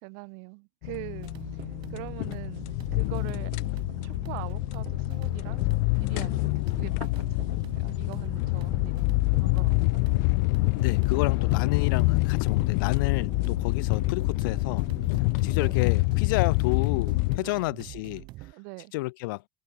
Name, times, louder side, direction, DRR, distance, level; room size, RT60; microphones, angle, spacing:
voice 1, 0.0-2.7 2.9-3.5 4.0-5.7 5.9-9.0 9.4-10.0 15.5-15.8 17.4-17.6 18.5-18.9, right 40 dB or more, 65° right, 3.3 m, -43 dB
sound 1, 0.8-17.4, left 36 dB, 65° left, 0.4 m, -26 dB
sound 2, 1.2-18.5, right 19 dB, 45° right, 7.2 m, -44 dB
voice 2, 10.7-14.9 15.4-18.2 18.9-19.4, left 23 dB, 85° left, 3.2 m, -30 dB
cardioid pair, 170°, 11 cm